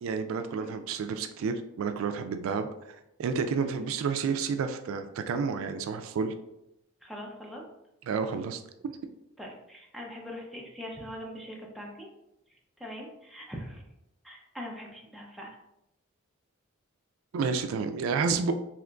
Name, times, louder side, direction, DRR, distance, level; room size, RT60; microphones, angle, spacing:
voice 1, 0.0-2.7 3.2-6.3 8.1-9.0 17.3-18.5, right 5 dB, 80° right, 8 dB, 0.3 m, -30 dB
voice 2, 7.0-7.6 9.4-12.1 12.8-13.8 14.2-15.5, equal, ahead, -2 dB, 0.5 m, -42 dB
3.7 x 2.9 x 2.2 m, 0.85 s
head